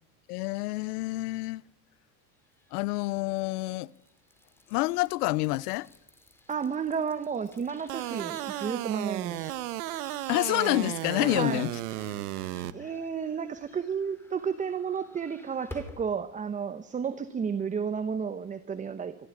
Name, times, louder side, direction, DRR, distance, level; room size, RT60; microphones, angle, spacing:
voice 1, 0.3-1.6 2.7-3.9 4.7-5.9 10.3-11.7, left 20 dB, 85° left, 0.8 m, -28 dB
sound 1, 2.5-16.1, left 2 dB, 5° left, 2.8 m, -53 dB
voice 2, 6.5-9.5 11.2-11.6 12.7-19.2, right 6 dB, 15° right, 0.9 m, -32 dB
sound 2, 7.9-12.7, right 15 dB, 90° right, 1.3 m, -34 dB
25.0 x 14.5 x 9.8 m
supercardioid pair, 140°, 44 cm